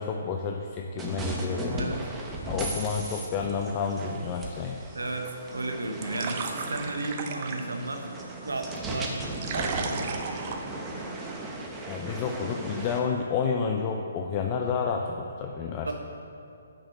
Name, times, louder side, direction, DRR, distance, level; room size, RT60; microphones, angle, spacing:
voice 1, 0.0-2.0 2.4-4.8 11.9-15.9, left 5 dB, 30° left, 2 dB, 0.6 m, -30 dB
sound 1, 1.0-13.0, right 1 dB, 15° right, 1.1 m, -36 dB
voice 2, 4.9-8.1 8.4-9.1 9.5-10.2 15.9-16.0, right 2 dB, 90° right, 5 dB, 1.1 m, -34 dB
sound 2, 5.5-11.4, right 5 dB, 40° right, 0.8 m, -37 dB
8.0 x 6.3 x 6.6 m, 2.5 s
hypercardioid pair, 145°, 0 cm